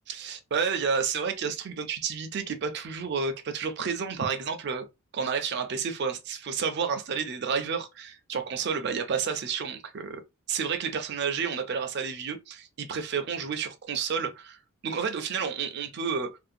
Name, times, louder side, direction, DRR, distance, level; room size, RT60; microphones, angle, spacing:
voice 1, 0.1-4.9 5.1-10.2 10.5-16.4, right 6 dB, 50° right, 0.4 m, -30 dB
2.6 x 2.1 x 2.5 m
head